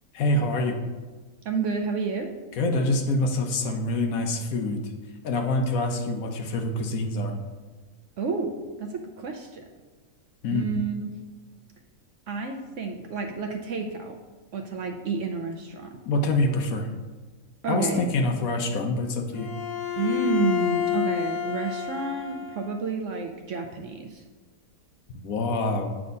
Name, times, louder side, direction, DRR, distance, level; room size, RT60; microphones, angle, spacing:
voice 1, 0.1-0.8 2.6-4.8 5.2-7.3 10.4-10.7 16.1-16.9 17.7-19.5 25.1-25.9, left 2 dB, 70° left, 4 dB, 1.2 m, -25 dB
voice 2, 1.4-2.3 8.2-8.5 8.8-9.7 10.5-11.1 12.3-14.2 14.5-16.0 17.6-18.0 20.0-24.2, right 4 dB, 65° right, 4 dB, 0.8 m, -30 dB
Bowed string instrument, 19.3-22.8, left 9 dB, 85° left, 1.7 m, -29 dB
8.5 x 3.4 x 5.2 m, 1.3 s
omnidirectional pair, 1.6 m